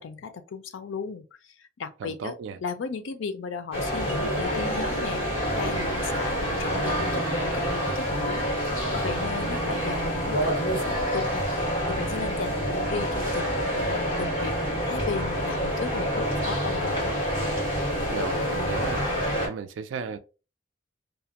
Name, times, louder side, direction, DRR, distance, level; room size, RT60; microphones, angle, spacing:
voice 1, 0.0-2.3 2.6-11.5 11.9-17.2, left 5 dB, 85° left, 0.4 m, -36 dB
voice 2, 2.0-2.6 18.1-20.2, right 5 dB, 85° right, 0.3 m, -35 dB
sound 1, 3.7-19.5, equal, 30° left, 1.3 m, -27 dB
2.4 x 2.1 x 2.8 m
head